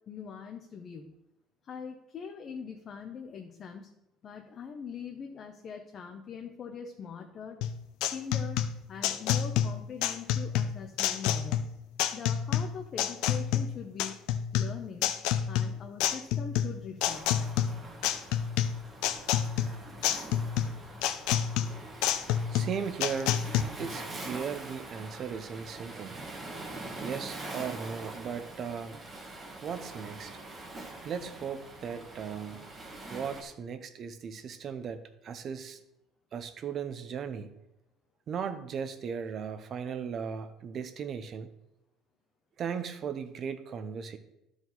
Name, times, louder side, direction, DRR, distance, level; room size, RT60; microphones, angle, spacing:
voice 1, 0.1-1.2 1.6-3.9 4.2-7.6 8.1-8.6 8.9-11.6 12.1-14.1 14.5-15.1 15.5-17.5 20.6-20.8, left 6 dB, 35° left, 3 dB, 0.6 m, -42 dB
sound 1, 7.6-23.6, left 10 dB, 80° left, 0.5 m, -29 dB
Waves surf, 17.0-33.4, right 2 dB, 20° right, 1.3 m, -44 dB
voice 2, 22.5-23.4 23.8-26.2 27.0-29.0 29.6-30.4 31.0-32.7 33.1-35.8 36.3-37.5 38.3-41.5 42.6-44.2, right 7 dB, 35° right, 10 dB, 0.6 m, -37 dB
12.5 x 4.8 x 4.0 m, 0.89 s
cardioid pair, 165°, 0 cm